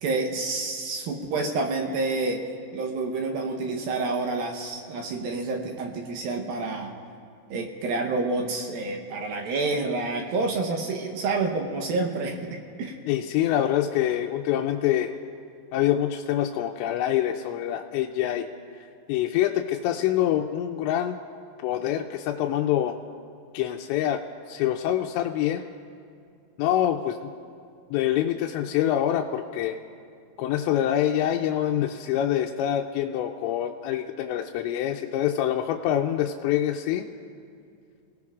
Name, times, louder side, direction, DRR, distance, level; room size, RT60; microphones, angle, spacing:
voice 1, 0.0-2.4 2.7-6.9 7.5-13.0, right 3 dB, 70° right, 2 dB, 2.4 m, -28 dB
voice 2, 13.1-15.1 15.7-18.5 18.8-21.2 21.6-23.0 23.5-25.6 26.6-27.3 27.9-29.8 30.4-37.1, left 11 dB, 90° left, 2 dB, 2.8 m, -25 dB
28.5 x 18.0 x 2.4 m, 2.4 s
omnidirectional pair, 5.0 m